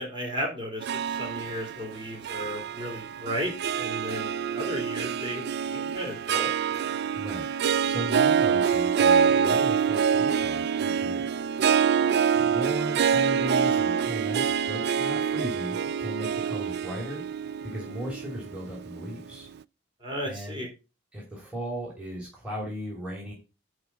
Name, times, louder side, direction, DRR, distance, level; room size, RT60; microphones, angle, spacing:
voice 1, 0.0-5.4 5.7-6.5 12.3-12.7 20.0-20.7, equal, 25° right, 1 dB, 3.7 m, -34 dB
Harp, 0.8-19.3, right 7 dB, 55° right, 0.3 m, -26 dB
voice 2, 7.1-7.5 7.8-11.3 12.4-17.2 17.6-19.5 20.2-20.6 21.1-23.3, equal, 5° right, -4 dB, 2.8 m, -37 dB
11.0 x 4.0 x 5.6 m, 0.30 s
head